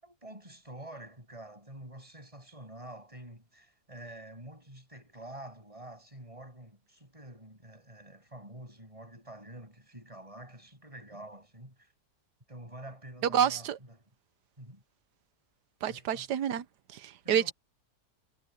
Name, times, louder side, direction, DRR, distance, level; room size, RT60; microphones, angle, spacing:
voice 1, 0.0-11.9 12.5-14.1 14.6-14.8 15.9-16.3 17.2-17.5, right 1 dB, 20° right, 8.1 m, -48 dB
voice 2, 13.3-13.8 15.8-16.6 16.9-17.5, right 9 dB, 80° right, 1.4 m, -28 dB
omnidirectional pair, 1.8 m